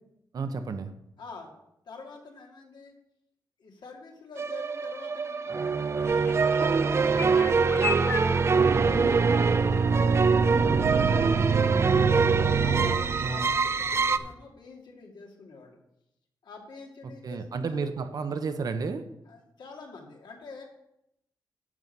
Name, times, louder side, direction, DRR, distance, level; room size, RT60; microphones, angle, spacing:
voice 1, 0.3-0.9 6.9-7.2 11.3-11.8 13.2-13.5 17.0-19.0, right 4 dB, 55° right, 9 dB, 0.9 m, -33 dB
voice 2, 1.2-1.5 1.9-2.9 3.6-5.8 6.3-10.1 10.8-12.2 12.6-15.8 16.4-17.8 19.3-20.6, left 4 dB, 70° left, 1 dB, 2.2 m, -46 dB
sound 1, 4.4-14.2, right 5 dB, 35° right, 0.5 m, -23 dB
sound 2, 6.0-14.3, left 4 dB, 30° left, 0.8 m, -40 dB
Bowed string instrument, 8.5-13.3, left 6 dB, 45° left, 1.8 m, -48 dB
11.0 x 6.3 x 5.4 m, 0.80 s
wide cardioid pair, 150°, 8 cm